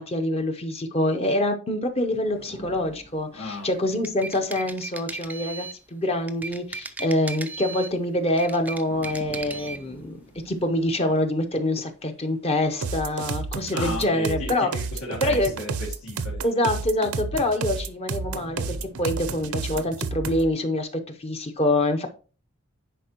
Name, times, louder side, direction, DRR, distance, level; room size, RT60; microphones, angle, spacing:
voice 1, 0.0-10.2 10.5-14.7 15.2-15.5 16.4-22.1, left 1 dB, 25° left, 5 dB, 0.7 m, -25 dB
sound 1, 2.0-5.1 7.5-13.8 16.4-16.5 17.1-19.9, right 1 dB, 45° left, 2.8 m, -49 dB
voice 2, 3.3-3.8 13.7-16.4, left 2 dB, 80° left, -6 dB, 2.1 m, -34 dB
sound 2, 3.9-5.8 6.3-8.0 8.3-9.8, right 3 dB, 5° right, 0.3 m, -36 dB
sound 3, 12.8-20.5, right 4 dB, 75° right, 0.6 m, -30 dB
10.0 x 4.3 x 2.9 m, 0.37 s
head